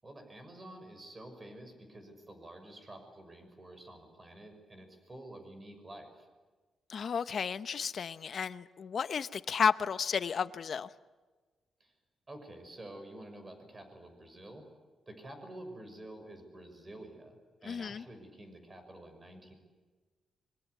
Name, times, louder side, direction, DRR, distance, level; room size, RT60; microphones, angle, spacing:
voice 1, 0.0-6.3 11.8-11.9 12.3-14.7 15.1-19.5, right 1 dB, 25° right, 6.3 m, -49 dB
voice 2, 6.9-10.9 17.6-18.0, left 6 dB, 50° left, 0.9 m, -32 dB
25.0 x 24.5 x 8.3 m
cardioid pair, 115°, 0 cm